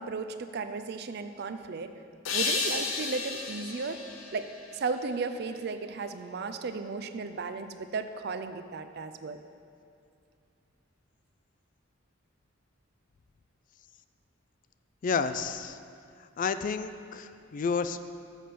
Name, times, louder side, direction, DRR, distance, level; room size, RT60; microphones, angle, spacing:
voice 1, 0.0-1.9 2.3-4.0 4.3-9.4, right 4 dB, 55° right, 9 dB, 0.4 m, -35 dB
sound 1, 2.3-5.4, left 4 dB, 80° left, 0.9 m, -33 dB
voice 2, 15.0-15.8 16.4-18.1, left 5 dB, 40° left, 11 dB, 0.3 m, -30 dB
7.2 x 6.7 x 5.8 m, 2.3 s
head